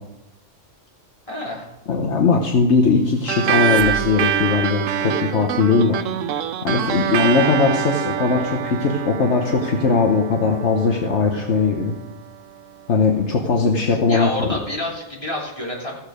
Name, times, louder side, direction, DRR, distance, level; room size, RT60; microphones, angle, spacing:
voice 1, 1.3-1.7 6.9-7.1 13.8-15.9, left 1 dB, 25° left, -4 dB, 3.3 m, -29 dB
voice 2, 1.9-6.0 6.6-11.9 12.9-14.5, left 4 dB, 65° left, 2 dB, 1.3 m, -19 dB
sound 1, 2.9-4.7, right 6 dB, 55° right, 0.5 m, -35 dB
sound 2, 3.3-12.1, right 9 dB, 90° right, 1.0 m, -25 dB
15.0 x 7.2 x 5.0 m, 0.92 s
omnidirectional pair, 1.3 m